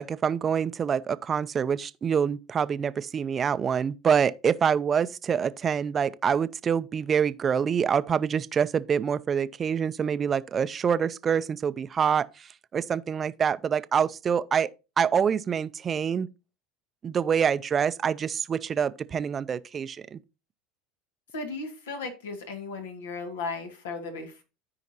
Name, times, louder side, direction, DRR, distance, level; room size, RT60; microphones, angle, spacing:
voice 1, 0.0-14.7 15.0-16.3 17.0-20.2, right 7 dB, 35° right, 0.5 m, -26 dB
voice 2, 21.3-24.4, left 3 dB, 85° left, 1.9 m, -36 dB
13.5 x 5.0 x 2.8 m
hypercardioid pair, 85°, 0 cm